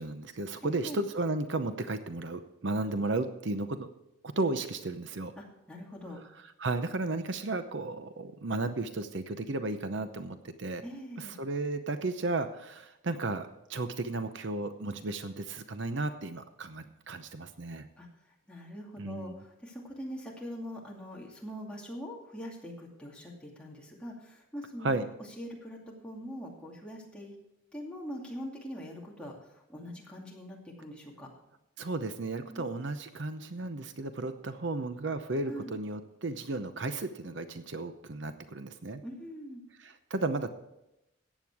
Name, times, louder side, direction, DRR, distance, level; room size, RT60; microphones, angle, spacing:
voice 1, 0.0-3.9 4.2-5.3 6.6-10.8 11.2-17.9 19.0-19.4 24.8-25.1 31.8-39.0 39.8-40.5, right 2 dB, 65° right, 9 dB, 0.8 m, -34 dB
voice 2, 0.6-1.0 5.4-6.2 10.8-11.3 18.0-18.1 18.5-25.0 25.4-25.8 26.0-27.3 27.7-31.3 32.5-32.7 35.5-35.7 39.0-39.6, equal, 5° left, -3 dB, 2.4 m, -43 dB
14.5 x 9.1 x 4.7 m, 0.87 s
head